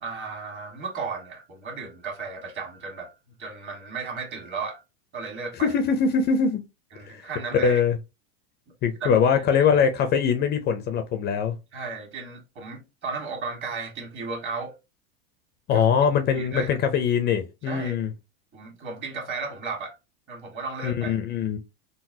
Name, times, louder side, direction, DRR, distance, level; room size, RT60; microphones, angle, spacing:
voice 1, 0.0-3.1 3.4-4.8 5.1-5.8 6.9-7.8 9.0-9.4 11.7-14.7 15.7-15.8 16.3-16.7 17.6-18.0 18.5-20.0 20.3-21.2, right 4 dB, 40° right, 1.7 m, -34 dB
voice 2, 5.6-6.6 7.0-8.0 8.8-11.5 15.7-18.1 20.8-21.6, left 6 dB, 35° left, 0.5 m, -22 dB
3.8 x 2.0 x 2.7 m
hypercardioid pair, 115°, 30 cm